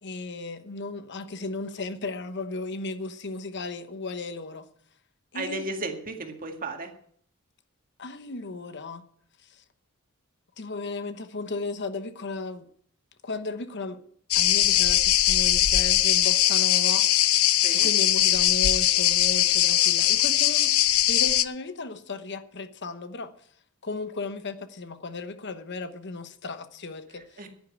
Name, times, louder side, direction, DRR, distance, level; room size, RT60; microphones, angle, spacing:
voice 1, 0.0-4.7 5.3-5.7 8.0-9.1 9.4-9.6 10.6-12.7 13.2-14.0 14.3-17.1 17.7-20.7 21.1-23.3 23.8-27.5, left 3 dB, 55° left, 1.1 m, -35 dB
voice 2, 5.3-6.9 17.6-17.9 27.4-27.5, right 3 dB, 40° right, 2.0 m, -34 dB
sound 1, 14.3-21.5, left 13 dB, 85° left, 0.7 m, -21 dB
10.5 x 10.0 x 8.7 m
head